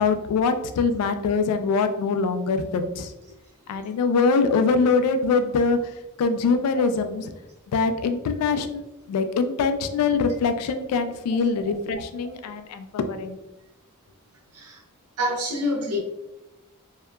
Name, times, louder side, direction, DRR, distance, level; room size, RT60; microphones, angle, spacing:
voice 1, 0.0-3.1 3.7-5.8 6.2-7.3 7.7-8.8 9.1-13.4, left 4 dB, 80° left, 9 dB, 0.3 m, -23 dB
voice 2, 15.2-16.0, left 1 dB, 80° right, 1 dB, 0.6 m, -26 dB
2.7 x 2.2 x 2.2 m, 0.94 s
head